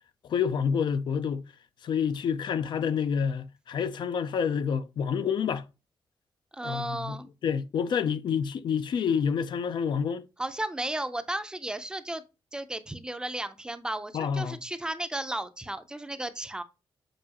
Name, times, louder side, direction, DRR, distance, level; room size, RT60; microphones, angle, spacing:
voice 1, 0.3-1.5 1.8-5.6 6.6-7.2 7.4-10.2 14.1-14.6, left 7 dB, 60° left, 0.5 m, -28 dB
voice 2, 6.5-7.3 10.4-12.2 12.5-16.6, right 1 dB, 10° right, 0.5 m, -34 dB
7.6 x 4.7 x 2.9 m
wide cardioid pair, 180°, 9 cm